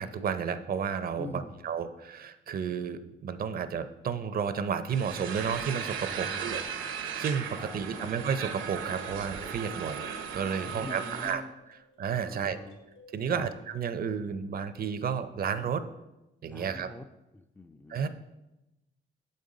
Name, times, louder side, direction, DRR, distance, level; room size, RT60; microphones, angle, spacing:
voice 1, 0.0-6.6 7.2-10.1 10.3-11.4 12.0-12.6 13.1-15.8 16.4-16.9 17.9-18.1, right 7 dB, 50° right, 11 dB, 0.5 m, -32 dB
voice 2, 1.2-1.7 6.1-6.9 7.6-8.1 10.6-11.5 12.3-12.8 13.3-13.5 16.5-17.1 17.3-18.0, left 2 dB, 10° left, 6 dB, 0.3 m, -45 dB
sound 1, 4.9-11.3, right 7 dB, 80° right, 0.8 m, -37 dB
sound 2, 8.4-13.6, equal, 80° left, 1.9 m, -58 dB
6.7 x 5.4 x 3.8 m, 0.97 s
cardioid pair, 90°, 20 cm